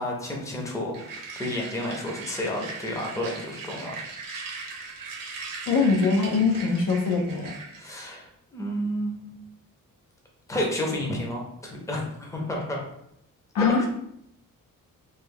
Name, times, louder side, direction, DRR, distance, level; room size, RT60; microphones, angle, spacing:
voice 1, 0.0-3.9 7.8-9.4 10.5-12.9 13.8-13.9, left 1 dB, 10° left, -1 dB, 0.6 m, -31 dB
sound 1, 0.9-8.1, right 4 dB, 85° right, 0.7 m, -39 dB
voice 2, 5.7-7.5 13.5-13.8, left 4 dB, 75° left, 1 dB, 0.7 m, -22 dB
3.2 x 2.2 x 3.5 m, 0.76 s
wide cardioid pair, 130°, 33 cm